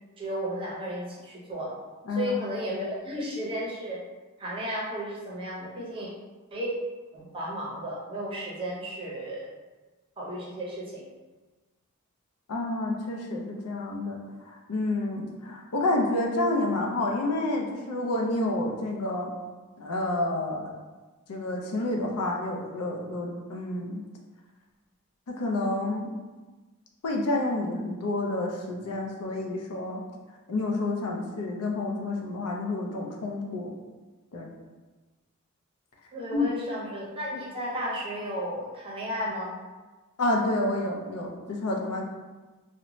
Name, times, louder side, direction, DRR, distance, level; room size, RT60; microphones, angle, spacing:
voice 1, 0.2-1.7 2.1-4.0 4.4-6.1 6.5-6.7 7.1-9.5 10.2-11.0 36.1-39.6, equal, 25° right, -5 dB, 0.6 m, -33 dB
voice 2, 12.5-14.2 14.5-19.3 19.8-20.7 21.3-24.0 25.3-26.1 27.0-30.0 30.5-33.7 34.3-34.5 36.3-36.5 40.2-42.0, left 2 dB, 85° left, 0 dB, 0.5 m, -29 dB
2.6 x 2.1 x 2.9 m, 1.2 s
head